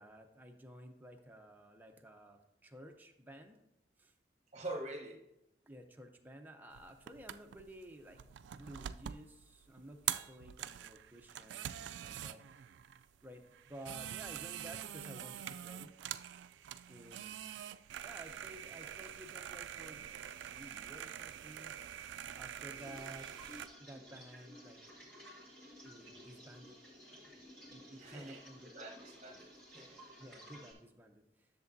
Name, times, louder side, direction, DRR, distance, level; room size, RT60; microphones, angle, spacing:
voice 1, 0.0-3.6 4.0-4.1 5.6-8.2 8.5-12.4 13.2-15.9 16.9-17.4 18.0-20.0 20.5-21.8 22.4-23.3 23.8-24.8 25.8-26.8 27.1-27.3 27.7-28.7 30.2-31.5, right 1 dB, 10° right, 0.7 m, -53 dB
voice 2, 4.5-5.3 28.0-30.1, right 2 dB, 40° right, 1.1 m, -46 dB
sound 1, 6.7-23.7, right 11 dB, 85° right, 0.3 m, -45 dB
sound 2, 22.7-30.7, equal, 5° left, 2.3 m, -55 dB
10.5 x 6.8 x 2.7 m
head